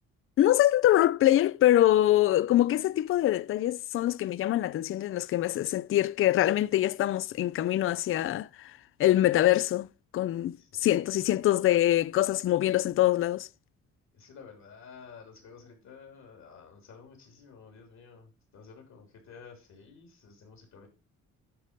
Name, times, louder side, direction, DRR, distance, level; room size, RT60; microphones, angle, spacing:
voice 1, 0.4-8.5 9.0-9.9 10.1-13.5, left 13 dB, 45° left, 0.4 m, -24 dB
voice 2, 10.5-11.2 14.1-20.9, left 5 dB, 65° left, 3.2 m, -52 dB
10.0 x 4.2 x 5.1 m
cardioid pair, 90°, 30 cm